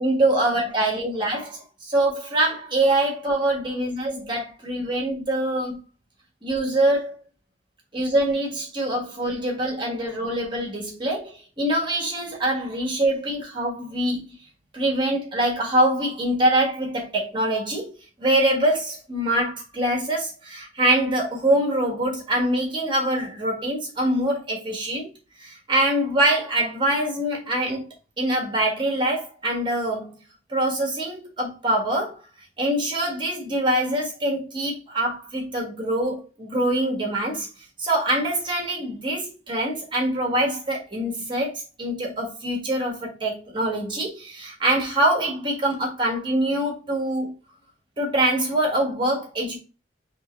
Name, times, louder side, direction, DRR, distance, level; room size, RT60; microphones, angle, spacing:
voice 1, 0.0-5.8 6.4-7.1 7.9-14.4 14.7-17.9 18.2-25.1 25.4-27.9 28.2-30.1 30.5-32.2 32.6-37.5 37.8-47.3 48.0-49.6, right 1 dB, 25° right, 1.4 m, -24 dB
3.8 x 3.0 x 3.9 m
head